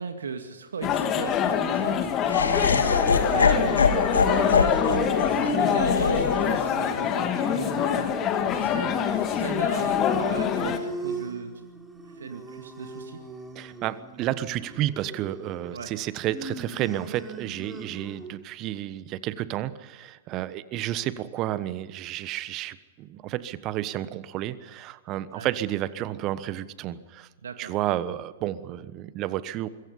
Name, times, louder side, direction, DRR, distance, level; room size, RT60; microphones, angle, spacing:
voice 1, 0.0-2.5 3.2-4.0 4.3-8.1 8.5-11.5 12.2-13.2 15.7-15.9 25.3-25.5 27.4-27.7, right 5 dB, 65° right, 6 dB, 2.2 m, -37 dB
sound 1, 0.8-10.8, left 8 dB, 25° left, 2.2 m, -25 dB
Laughter, 2.3-8.4, left 5 dB, 70° left, 2.5 m, -25 dB
sound 2, 4.0-18.4, right 2 dB, 10° right, 3.4 m, -40 dB
voice 2, 13.5-27.3 27.6-29.7, right 13 dB, 30° right, 16 dB, 1.2 m, -31 dB
25.5 x 23.0 x 5.6 m, 1.3 s
figure-of-eight pair, 105°, 0 cm